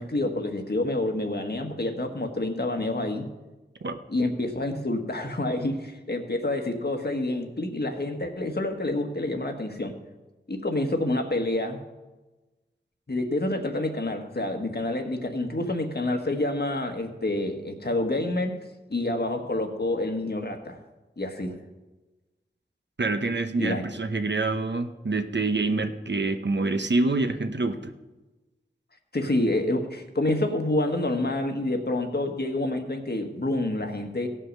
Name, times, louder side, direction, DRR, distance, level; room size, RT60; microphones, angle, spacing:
voice 1, 0.0-3.3 4.1-9.9 10.5-11.8 13.1-18.5 18.9-20.8 21.2-21.6 23.6-23.8 29.1-34.3, left 2 dB, 55° left, 5 dB, 1.4 m, -28 dB
voice 2, 23.0-27.9, right 3 dB, 65° right, 7 dB, 0.9 m, -26 dB
16.5 x 5.6 x 6.4 m, 1.1 s
wide cardioid pair, 45°, 20 cm